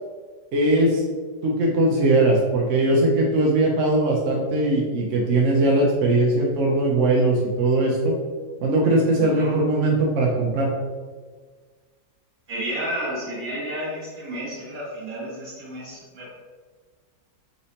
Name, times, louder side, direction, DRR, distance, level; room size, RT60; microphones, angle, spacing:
voice 1, 0.5-1.0 1.4-8.1 8.6-10.7, right 2 dB, 65° right, -3 dB, 0.8 m, -20 dB
voice 2, 9.2-9.6 12.5-16.4, right 1 dB, 45° right, -7 dB, 1.9 m, -31 dB
4.2 x 4.1 x 2.7 m, 1.5 s
omnidirectional pair, 1.9 m